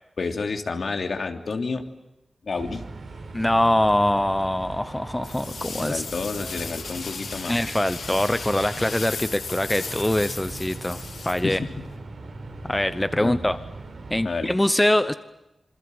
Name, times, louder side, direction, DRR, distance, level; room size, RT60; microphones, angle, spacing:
voice 1, 0.2-1.8 2.4-2.8 5.8-7.6 11.4-11.8 13.2-13.4 14.2-14.5, left 4 dB, 60° left, 4 dB, 3.0 m, -30 dB
sound 1, 2.5-14.3, right 3 dB, 60° right, 6.1 m, -39 dB
voice 2, 3.3-6.0 7.5-11.6 12.6-13.6 14.1-15.1, left 1 dB, 10° left, 11 dB, 0.9 m, -23 dB
sound 2, 5.2-12.0, left 5 dB, 90° left, 5.4 m, -36 dB
27.0 x 26.0 x 7.9 m, 0.94 s
wide cardioid pair, 135°, 0 cm